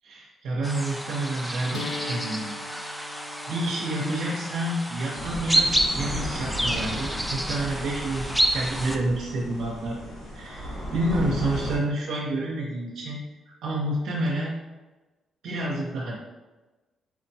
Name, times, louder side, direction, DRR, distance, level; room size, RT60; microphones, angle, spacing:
voice 1, 0.0-2.6 3.5-10.0 10.3-13.2 13.6-14.5 15.4-16.2, right 1 dB, 80° right, -5 dB, 0.6 m, -29 dB
sound 1, 0.6-9.0, right 1 dB, ahead, 0.3 m, -29 dB
sound 2, 1.7-7.7, left 3 dB, 85° left, 0.4 m, -42 dB
sound 3, 5.1-11.8, equal, 70° left, 1.2 m, -35 dB
4.5 x 2.2 x 2.7 m, 1.2 s
cardioid pair, 90°, 0 cm